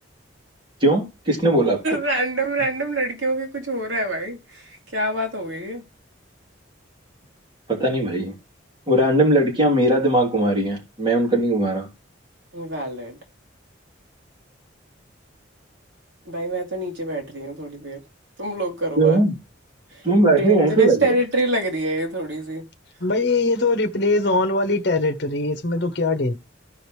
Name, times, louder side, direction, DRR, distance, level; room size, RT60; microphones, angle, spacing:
voice 1, 0.8-1.8 7.7-8.3 8.9-11.8 18.9-19.3 20.0-21.1, right 2 dB, 25° right, 3.0 m, -19 dB
voice 2, 1.8-4.6 4.9-5.8 12.5-13.2 16.3-18.0 18.4-19.2 20.2-22.6, right 1 dB, 70° right, 2.6 m, -26 dB
voice 3, 23.0-26.3, left 2 dB, 60° left, 1.1 m, -21 dB
14.0 x 5.2 x 3.2 m
head